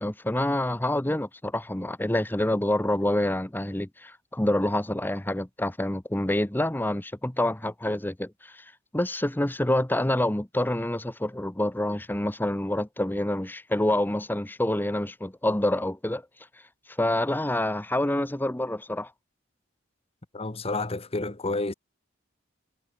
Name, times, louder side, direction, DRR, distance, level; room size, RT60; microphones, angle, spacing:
voice 1, 0.0-8.6 8.9-16.2 17.0-19.1, left 1 dB, 10° left, 0.9 m, -27 dB
voice 2, 20.3-21.7, left 2 dB, 30° left, 1.3 m, -30 dB
head